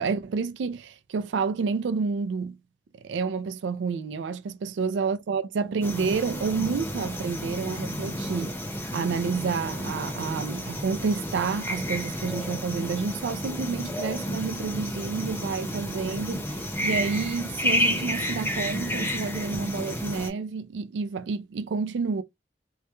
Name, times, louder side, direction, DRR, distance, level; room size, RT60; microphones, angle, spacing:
voice 1, 0.0-2.6 3.0-8.5 8.9-22.2, right 5 dB, 75° right, 0.3 m, -29 dB
sound 1, 5.8-20.3, equal, 10° left, 0.7 m, -31 dB
2.3 x 2.1 x 2.9 m
head